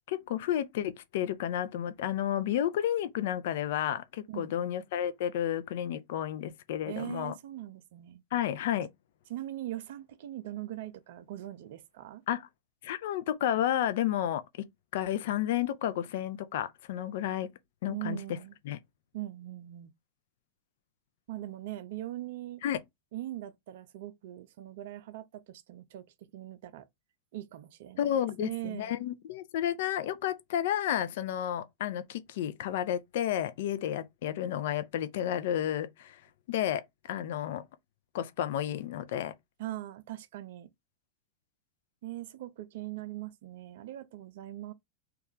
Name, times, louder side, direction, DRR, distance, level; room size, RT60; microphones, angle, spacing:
voice 1, 0.1-7.3 8.3-8.9 12.3-12.5 12.8-14.7 14.9-17.5 17.8-18.2 18.6-18.8 22.6-22.8 28.0-36.2 36.5-37.6 38.1-39.3, left 11 dB, 55° left, 0.4 m, -31 dB
voice 2, 4.3-4.7 6.8-8.2 9.3-12.2 17.9-18.6 19.1-19.9 21.3-22.6 23.1-26.0 26.3-26.9 27.3-29.0 39.6-40.7 42.0-44.7, right 14 dB, 55° right, 0.4 m, -41 dB
3.0 x 2.3 x 3.6 m
figure-of-eight pair, 90°, 0 cm